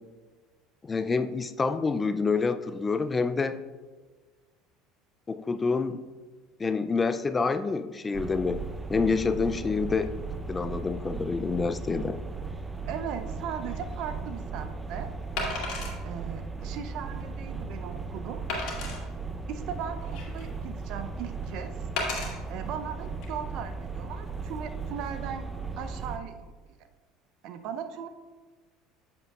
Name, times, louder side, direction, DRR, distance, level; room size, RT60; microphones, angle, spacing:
voice 1, 0.8-3.6 5.3-6.0 6.6-8.6 8.9-10.1 10.5-12.2, left 4 dB, 25° left, 11 dB, 0.4 m, -27 dB
sound 1, 8.1-26.2, right 4 dB, 15° right, 0.6 m, -37 dB
voice 2, 12.9-15.1 16.0-18.4 19.5-21.9 22.5-25.4 25.8-26.5 27.4-28.1, right 8 dB, 60° right, 9 dB, 0.6 m, -38 dB
Wood, 13.8-13.9 15.4-16.0 16.6-16.7 17.2-17.3 18.5-19.0 19.8-20.5 22.0-22.3 23.1-23.3, left 3 dB, 65° left, 1.9 m, -33 dB
7.7 x 7.4 x 2.4 m, 1.4 s
hypercardioid pair, 70°, 0 cm